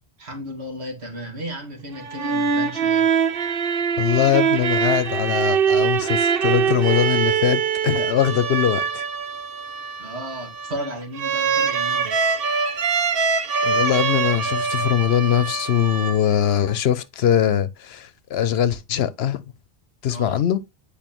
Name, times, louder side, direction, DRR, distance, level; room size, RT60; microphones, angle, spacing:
voice 1, 0.2-3.1 10.0-12.2 20.1-20.4, right 1 dB, 80° right, 2.4 m, -34 dB
sound 1, 1.9-16.6, right 6 dB, 65° right, 1.0 m, -23 dB
voice 2, 4.0-9.0 13.6-19.4 20.0-20.6, left 10 dB, 75° left, 0.9 m, -21 dB
8.9 x 5.0 x 3.0 m
omnidirectional pair, 1.1 m